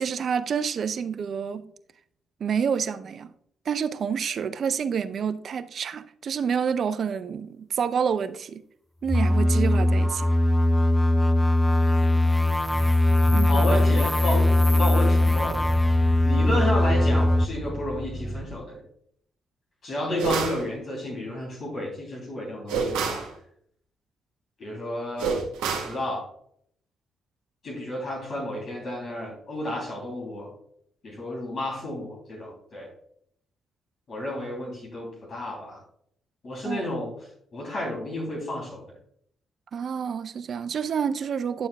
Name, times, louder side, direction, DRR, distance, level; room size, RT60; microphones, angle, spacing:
voice 1, 0.0-1.7 2.4-3.3 3.7-8.6 9.0-10.3 13.3-13.6 36.6-36.9 39.7-41.7, right 7 dB, 60° right, 0.5 m, -28 dB
sound 1, 9.1-17.5, left 1 dB, 5° left, 0.5 m, -20 dB
sound 2, 12.5-18.6, right 1 dB, 25° right, 0.9 m, -37 dB
voice 2, 13.5-15.6 16.2-18.8 19.8-23.2 24.6-25.4 25.7-26.3 27.6-30.5 31.0-32.9 34.1-35.8 36.4-37.1 37.5-38.9, left 1 dB, 55° left, 3.1 m, -31 dB
sound 3, 20.2-20.6 22.7-23.3 25.2-26.0, right 5 dB, 80° right, 1.4 m, -27 dB
10.0 x 7.0 x 2.3 m
hypercardioid pair, 45°, 0 cm